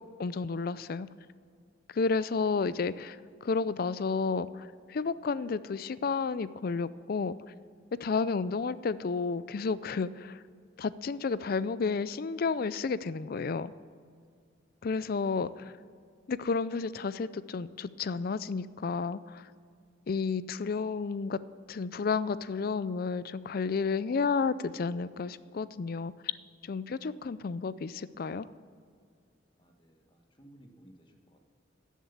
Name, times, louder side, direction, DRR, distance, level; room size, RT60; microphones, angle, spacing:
voice 1, 0.2-1.1 1.9-7.4 8.0-10.4 10.8-13.7 14.8-15.7 16.3-19.5 20.1-21.4 21.7-26.1 26.6-28.5, left 4 dB, 50° left, 17 dB, 0.4 m, -31 dB
voice 2, 14.8-15.7 20.1-20.4 27.1-27.3 29.6-31.4, right 1 dB, 25° left, 4 dB, 1.2 m, -60 dB
14.0 x 7.3 x 7.1 m, 2.2 s
head